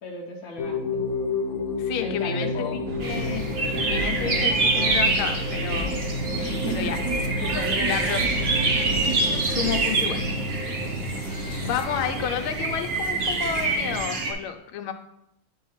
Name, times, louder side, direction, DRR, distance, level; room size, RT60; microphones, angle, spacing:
voice 1, 0.0-1.0 2.0-2.8 6.3-6.9 7.4-8.5, left 1 dB, 55° left, -2 dB, 1.2 m, -34 dB
sound 1, 0.6-14.1, left 3 dB, 70° left, 1.5 m, -32 dB
voice 2, 1.8-6.0 6.7-7.0 7.8-8.3 9.5-10.3 10.6-10.9 11.6-14.9, left 8 dB, 85° left, 7 dB, 1.5 m, -31 dB
sound 2, 2.9-14.0, right 3 dB, 65° right, 1.1 m, -33 dB
sound 3, 3.0-14.3, right 3 dB, 50° right, 0.7 m, -27 dB
9.2 x 3.1 x 5.6 m, 0.80 s
omnidirectional pair, 2.3 m